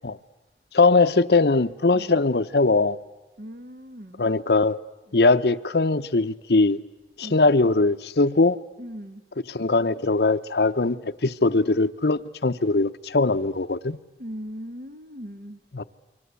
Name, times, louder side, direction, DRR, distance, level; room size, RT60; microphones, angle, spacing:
voice 1, 0.7-3.0 4.2-4.8 5.1-6.8 7.2-8.6 9.5-14.0 15.7-15.8, left 3 dB, 70° left, 0.8 m, -21 dB
voice 2, 3.4-4.2 7.2-7.5 8.8-9.2 14.2-15.6, equal, 55° right, 1.3 m, -39 dB
28.5 x 24.0 x 8.3 m
head